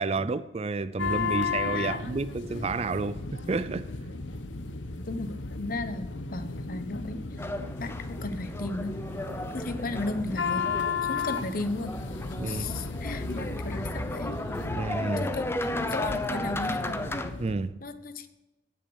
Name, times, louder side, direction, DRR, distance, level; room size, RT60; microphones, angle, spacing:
voice 1, 0.0-3.2 3.5-3.9 12.4-12.7 14.7-15.3 17.4-17.7, right 3 dB, 35° right, 0.4 m, -30 dB
sound 1, 1.0-17.5, left 4 dB, 85° left, 0.9 m, -34 dB
voice 2, 5.6-7.4 7.8-9.0 9.5-10.7 11.0-12.0 12.4-14.3 15.2-17.0 17.8-18.3, left 2 dB, 50° left, 0.8 m, -35 dB
sound 2, 7.4-17.3, left 1 dB, 15° left, 0.6 m, -35 dB
16.0 x 6.5 x 6.2 m
head